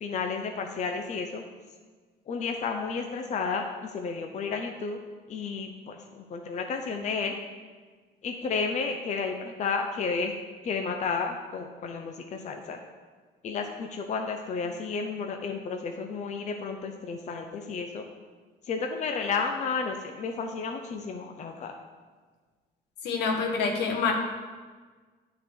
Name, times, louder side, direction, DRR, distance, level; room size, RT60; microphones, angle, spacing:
voice 1, 0.0-1.4 2.3-5.0 5.3-7.4 8.2-10.4 10.6-12.8 13.4-18.0 18.7-21.7, left 5 dB, 45° left, 4 dB, 0.7 m, -32 dB
voice 2, 23.0-24.1, left 5 dB, 80° left, 1 dB, 1.5 m, -26 dB
9.8 x 4.0 x 6.9 m, 1.5 s
cardioid pair, 110°, 17 cm